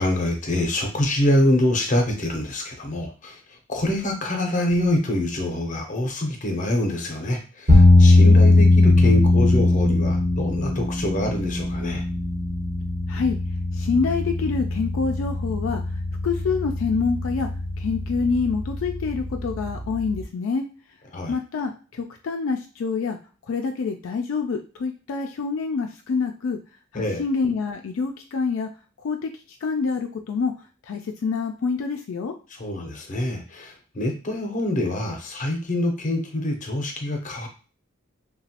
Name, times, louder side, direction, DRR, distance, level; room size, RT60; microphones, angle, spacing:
voice 1, 0.0-3.4 3.7-12.0 21.1-21.3 26.9-27.2 32.6-37.5, left 1 dB, 40° left, 3 dB, 0.7 m, -25 dB
sound 1, 7.7-20.2, left 2 dB, 60° right, 1.1 m, -20 dB
voice 2, 13.7-15.8 16.2-17.5 17.8-20.7 21.3-23.2 23.5-26.6 26.9-28.7 29.0-29.3 29.6-30.5 30.9-32.3, left 5 dB, 75° left, 4 dB, 0.4 m, -26 dB
2.9 x 2.2 x 2.8 m, 0.35 s
head